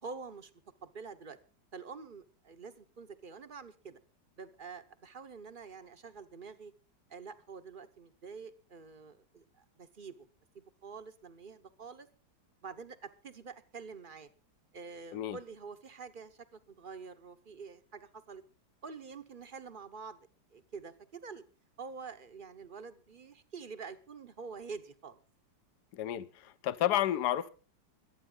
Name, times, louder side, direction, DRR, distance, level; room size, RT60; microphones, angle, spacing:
voice 1, 0.0-0.5 0.8-1.4 1.7-4.0 4.4-6.7 7.1-10.3 10.5-12.1 12.6-14.3 14.7-18.4 18.8-20.2 20.5-21.4 21.8-25.2, right 5 dB, 35° right, 0.9 m, -47 dB
voice 2, 25.9-27.5, left 12 dB, 65° left, 1.3 m, -31 dB
24.5 x 9.0 x 3.9 m
omnidirectional pair, 2.1 m